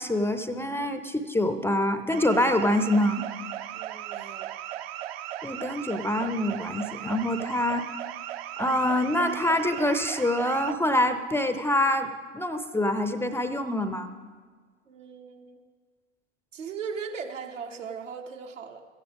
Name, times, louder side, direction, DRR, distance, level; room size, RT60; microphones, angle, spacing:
voice 1, 0.0-3.2 5.4-7.8 8.6-14.1, left 1 dB, 5° left, 9 dB, 0.4 m, -25 dB
sound 1, 2.1-10.7, right 12 dB, 55° right, 0.6 m, -37 dB
voice 2, 3.7-4.5 14.9-15.6 16.5-18.9, right 6 dB, 80° right, 3 dB, 1.3 m, -38 dB
16.0 x 14.5 x 3.5 m, 1.5 s
figure-of-eight pair, 85°, 37 cm